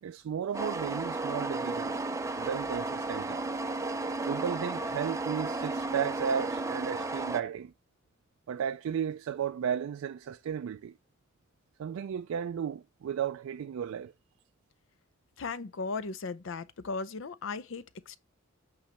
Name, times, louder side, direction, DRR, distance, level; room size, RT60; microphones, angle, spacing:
voice 1, 0.0-2.0 2.4-3.4 4.3-7.7 8.5-10.9 11.8-14.1, right 8 dB, 80° right, 0.3 m, -34 dB
sound 1, 0.5-7.4, right 2 dB, 15° right, 0.5 m, -33 dB
voice 2, 15.4-18.2, left 4 dB, 65° left, 0.6 m, -37 dB
8.5 x 3.2 x 5.7 m
head